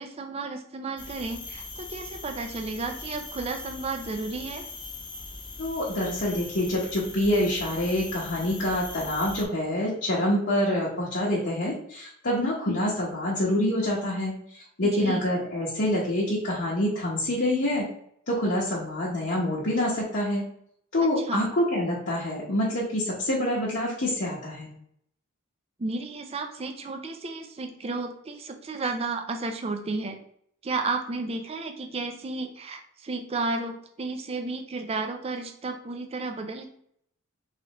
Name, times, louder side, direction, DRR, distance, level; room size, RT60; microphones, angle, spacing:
voice 1, 0.0-4.6 14.8-15.2 21.2-21.5 25.8-30.2 30.6-36.7, right 3 dB, 25° right, 5 dB, 0.4 m, -33 dB
sound 1, 1.0-9.4, left 3 dB, 20° left, 0.6 m, -40 dB
voice 2, 5.6-17.8 18.3-20.4 20.9-24.7, left 1 dB, 50° left, -6 dB, 0.9 m, -26 dB
3.7 x 3.3 x 2.9 m, 0.69 s
head